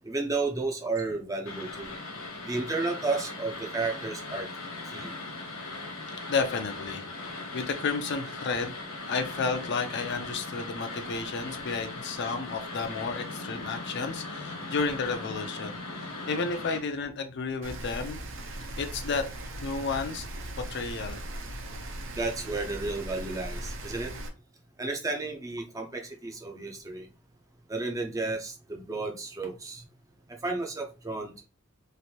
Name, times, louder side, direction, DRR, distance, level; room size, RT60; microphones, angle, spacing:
voice 1, 0.0-1.9 2.5-4.5 4.9-5.1 22.1-24.1 24.8-27.1 27.7-29.8 30.4-31.4, right 3 dB, 15° right, 3 dB, 0.4 m, -32 dB
sound 1, 1.4-16.8, left 2 dB, 70° left, 1.2 m, -39 dB
voice 2, 6.3-7.0 7.5-8.8 9.1-18.2 18.5-19.3 19.6-20.3 20.6-21.2, left 4 dB, 55° left, 7 dB, 0.5 m, -32 dB
Rain, 17.6-24.3, right 1 dB, 60° right, 0.6 m, -39 dB
3.1 x 2.5 x 2.7 m, 0.31 s
head